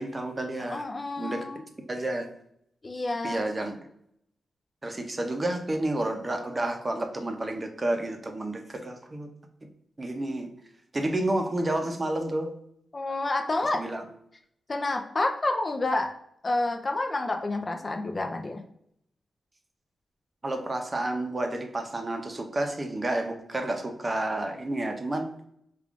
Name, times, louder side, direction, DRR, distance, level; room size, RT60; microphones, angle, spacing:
voice 1, 0.0-0.8 1.2-1.4 1.9-2.3 3.2-3.8 4.8-9.3 10.0-10.5 10.9-12.5 13.7-14.0 20.4-25.3, right 1 dB, 30° right, 4 dB, 0.6 m, -30 dB
voice 2, 0.6-1.6 2.8-3.4 12.9-13.8 14.7-16.1 16.4-18.6, left 2 dB, 35° left, 4 dB, 0.4 m, -29 dB
3.5 x 2.4 x 3.5 m, 0.72 s
cardioid pair, 80°, 0 cm